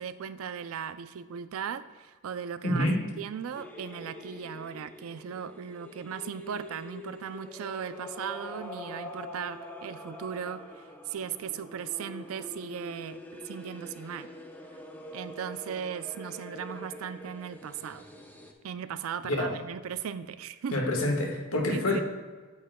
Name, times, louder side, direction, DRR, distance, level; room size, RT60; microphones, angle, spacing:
voice 1, 0.0-2.9 3.2-14.3 15.1-18.0 18.6-20.8 21.7-22.0, right 7 dB, 70° right, 13 dB, 0.4 m, -37 dB
voice 2, 2.6-3.0 19.2-19.5 20.7-22.0, left 1 dB, 70° left, 1 dB, 1.3 m, -27 dB
sound 1, 3.5-18.5, left 1 dB, 10° left, 0.5 m, -45 dB
9.1 x 8.4 x 2.2 m, 1.4 s
head